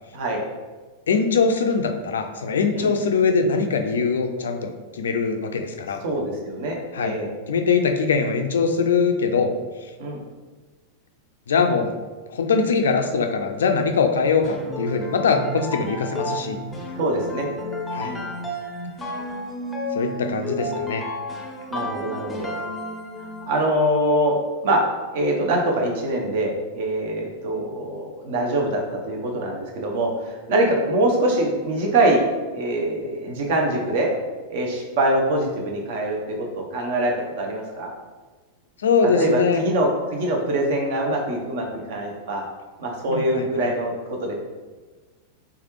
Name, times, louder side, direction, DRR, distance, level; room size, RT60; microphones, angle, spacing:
voice 1, 1.1-6.0 6.9-7.2 7.5-9.5 11.5-11.9 12.3-16.6 17.9-18.1 19.9-21.0 38.8-39.6 43.1-43.7, left 5 dB, 65° left, 6 dB, 0.3 m, -22 dB
voice 2, 6.0-7.3 10.0-10.2 16.9-17.5 18.0-18.3 21.7-22.5 23.5-24.3 24.6-24.8 25.1-28.8 29.1-32.2 32.5-34.1 34.5-36.2 36.6-37.9 39.2-42.4 42.8-44.3, right 1 dB, 50° right, 0 dB, 0.7 m, -24 dB
sound 1, 14.4-23.6, left 1 dB, 10° left, 0.6 m, -31 dB
3.5 x 3.2 x 3.0 m, 1.3 s
figure-of-eight pair, 90°, 0 cm